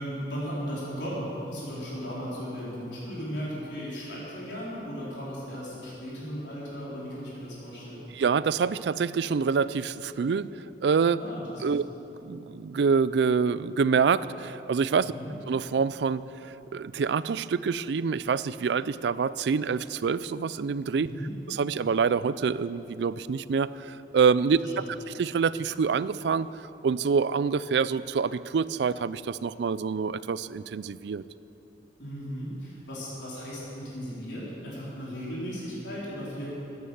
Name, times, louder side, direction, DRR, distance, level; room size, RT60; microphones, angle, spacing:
voice 1, 0.0-8.0 11.2-11.8 15.1-15.3 20.9-21.3 24.5-24.9 32.0-36.5, equal, 85° left, -7 dB, 4.0 m, -36 dB
voice 2, 8.1-10.5 10.8-11.2 11.6-11.8 12.2-15.1 15.5-21.1 21.5-24.8 25.2-26.5 26.8-31.2, right 5 dB, 70° right, 17 dB, 0.4 m, -26 dB
12.5 x 9.6 x 7.9 m, 2.9 s
head